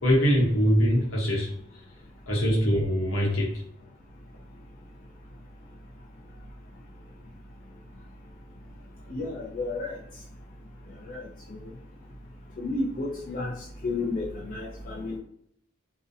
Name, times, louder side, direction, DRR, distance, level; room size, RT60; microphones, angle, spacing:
voice 1, 0.0-1.5 2.3-3.5, equal, 70° left, -3 dB, 0.9 m, -23 dB
voice 2, 9.1-10.0 11.1-11.2 11.5-11.6 12.6-13.5 13.8-15.2, left 2 dB, 40° left, -4 dB, 0.4 m, -31 dB
2.4 x 2.1 x 2.6 m, 0.70 s
head